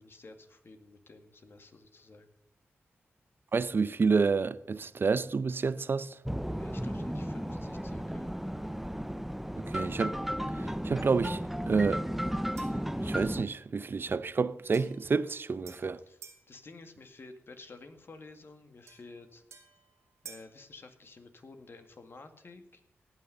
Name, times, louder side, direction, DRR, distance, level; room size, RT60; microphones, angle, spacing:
voice 1, 0.0-2.3 6.6-8.3 16.1-16.2 16.5-19.4 20.2-22.8, left 3 dB, 55° left, 1.9 m, -51 dB
voice 2, 3.5-6.2 9.6-10.2 10.6-12.0 13.0-16.0, right 4 dB, 50° right, 0.7 m, -29 dB
sound 1, 6.2-13.4, equal, 5° right, 0.6 m, -34 dB
sound 2, 12.6-12.9 14.7-16.5 18.9-20.6, right 6 dB, 90° right, 2.5 m, -52 dB
17.5 x 6.3 x 6.8 m
cardioid pair, 60°, 5 cm